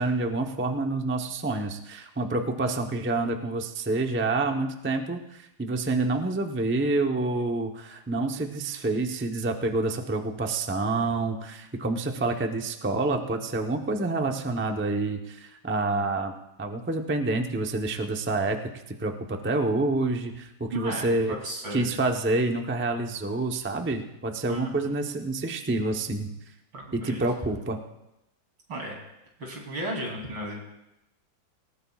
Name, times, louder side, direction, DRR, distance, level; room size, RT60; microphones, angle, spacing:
voice 1, 0.0-16.3 16.6-18.6 19.0-21.4 21.7-26.3 26.9-27.8, right 2 dB, 20° right, 3 dB, 0.3 m, -28 dB
voice 2, 20.7-21.9 24.5-24.9 26.7-27.3 28.7-29.0 29.4-30.6, right 1 dB, 90° right, -1 dB, 4.0 m, -34 dB
19.0 x 18.5 x 2.4 m, 0.90 s
omnidirectional pair, 2.1 m